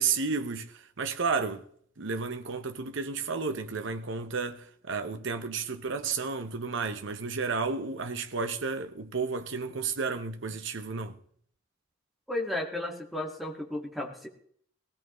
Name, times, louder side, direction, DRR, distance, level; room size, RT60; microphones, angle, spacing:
voice 1, 0.0-1.6 2.0-11.2, right 5 dB, 65° right, 0.9 m, -32 dB
voice 2, 12.3-14.3, left 1 dB, ahead, 1.9 m, -34 dB
19.5 x 15.0 x 3.1 m
head